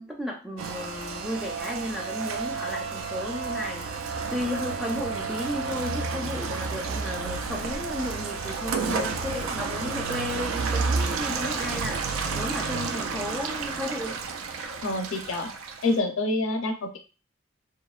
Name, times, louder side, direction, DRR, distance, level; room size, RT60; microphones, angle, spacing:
voice 1, 0.0-3.9 4.3-12.1 12.3-14.2, left 1 dB, ahead, -2 dB, 0.4 m, -34 dB
Rain, 0.6-16.0, right 4 dB, 85° right, 0.3 m, -31 dB
voice 2, 14.8-15.5 15.8-17.0, left 2 dB, 90° left, 5 dB, 0.5 m, -27 dB
2.8 x 2.1 x 2.3 m, 0.34 s
head